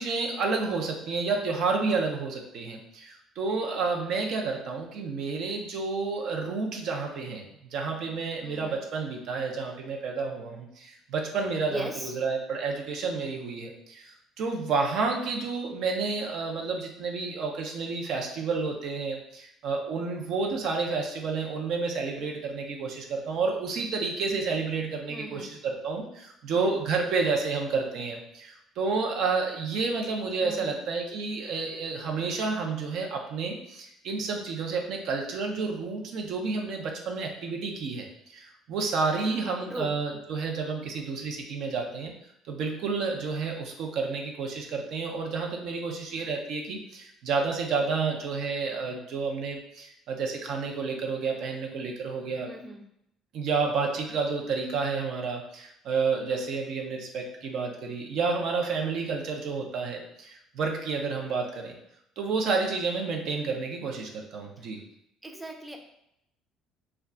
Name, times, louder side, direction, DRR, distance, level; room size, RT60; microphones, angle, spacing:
voice 1, 0.0-7.4 7.7-42.1 42.5-52.5 53.3-61.7 62.2-64.8, right 4 dB, 65° right, 1 dB, 0.5 m, -30 dB
voice 2, 8.4-8.8 11.7-12.1 25.1-25.5 30.4-30.8 39.7-39.9 52.4-52.9 64.6-64.7 65.2-65.8, right 1 dB, 10° right, 2 dB, 0.5 m, -38 dB
2.2 x 2.2 x 3.7 m, 0.76 s
supercardioid pair, 80°, 0 cm